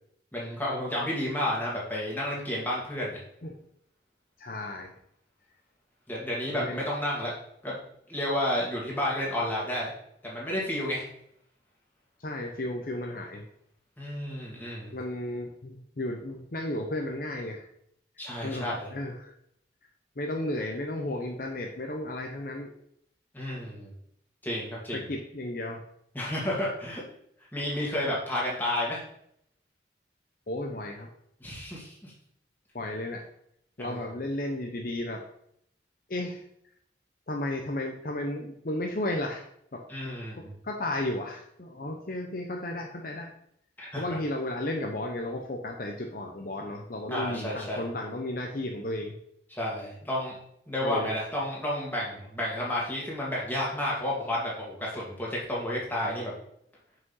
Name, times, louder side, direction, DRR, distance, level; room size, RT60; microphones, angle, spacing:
voice 1, 0.3-3.2 6.1-7.3 7.6-7.8 8.1-9.9 10.2-11.1 14.0-14.9 18.2-18.9 23.3-23.9 24.4-25.0 26.1-27.0 27.5-29.0 31.4-32.1 33.8-34.0 39.9-40.5 43.8-44.0 47.1-47.8 49.5-50.4 50.7-56.3, left 1 dB, 10° left, -5 dB, 2.3 m, -31 dB
voice 2, 4.4-4.9 6.5-6.8 12.2-13.5 14.9-17.7 18.4-19.3 20.2-22.7 24.9-25.8 30.5-31.1 32.7-33.3 33.8-35.2 36.1-36.4 37.3-39.4 39.7-39.8 40.3-43.3 44.0-49.2 50.8-51.1, left 1 dB, 50° left, 2 dB, 0.8 m, -34 dB
6.1 x 5.4 x 5.5 m, 0.71 s
head